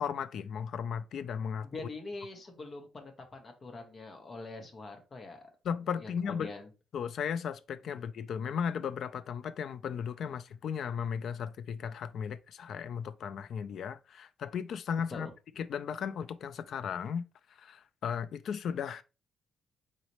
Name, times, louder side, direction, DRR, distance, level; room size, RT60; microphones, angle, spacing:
voice 1, 0.0-1.7 5.6-6.5 6.9-15.3 15.6-17.3 17.6-19.0, left 7 dB, 55° left, 0.4 m, -35 dB
voice 2, 1.6-5.5 6.0-6.7 15.1-15.3, left 3 dB, 30° left, 1.0 m, -44 dB
4.0 x 4.0 x 3.1 m
cardioid pair, 160°, 0 cm